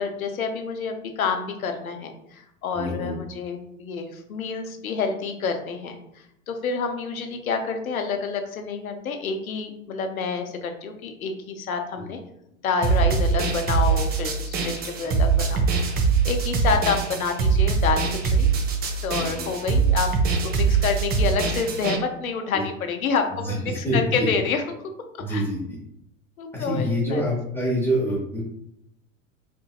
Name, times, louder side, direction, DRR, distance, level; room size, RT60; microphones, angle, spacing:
voice 1, 0.0-6.0 6.5-12.2 12.6-18.5 19.0-20.1 20.4-24.8 25.3-25.4 26.4-27.2, left 5 dB, 85° left, 6 dB, 0.7 m, -28 dB
voice 2, 2.7-3.1 11.9-12.0 19.2-19.5 22.5-22.6 23.4-24.3 25.2-25.8 26.5-28.4, equal, 5° left, -7 dB, 0.8 m, -26 dB
sound 1, 12.8-22.0, right 5 dB, 25° right, 0.4 m, -23 dB
4.3 x 2.7 x 2.4 m, 0.78 s
hypercardioid pair, 90°, 41 cm